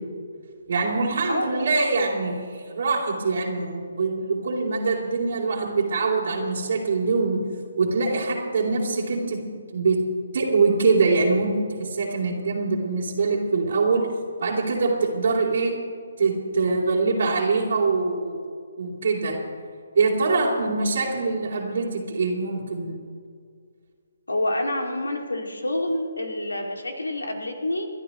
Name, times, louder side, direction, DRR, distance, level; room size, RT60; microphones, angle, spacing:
voice 1, 0.7-7.4 7.8-9.4 9.7-10.0 10.3-14.0 14.4-15.7 16.2-18.4 18.8-19.4 19.9-23.0, right 4 dB, 55° right, -5 dB, 3.0 m, -23 dB
voice 2, 1.3-1.7 20.4-20.5 21.0-21.1 24.3-27.9, left 1 dB, 80° left, 3 dB, 2.3 m, -28 dB
30.0 x 12.5 x 3.0 m, 2.1 s
figure-of-eight pair, 140°, 0 cm